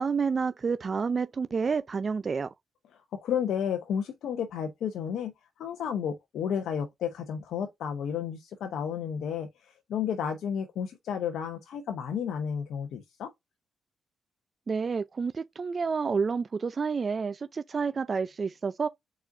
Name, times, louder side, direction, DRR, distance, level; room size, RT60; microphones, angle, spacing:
voice 1, 0.0-2.5 14.7-18.9, right 5 dB, 45° right, 0.4 m, -29 dB
voice 2, 3.1-13.3, left 8 dB, 80° left, 0.8 m, -32 dB
4.7 x 4.2 x 2.6 m
cardioid pair, 75°, 0 cm